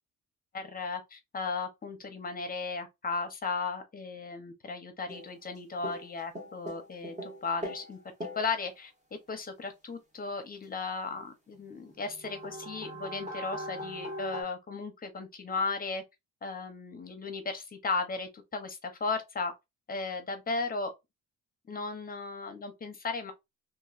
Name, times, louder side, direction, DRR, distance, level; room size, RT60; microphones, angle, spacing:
voice 1, 0.5-8.9 9.3-16.0 16.4-19.5 19.9-20.9 21.7-23.3, left 4 dB, 25° left, 0.8 m, -35 dB
sound 1, 5.1-5.6 5.8-7.9 8.2-8.5 11.5-11.6 11.9-14.4, equal, 20° right, 1.3 m, -40 dB
3.0 x 2.6 x 2.5 m
cardioid pair, 125°, 33 cm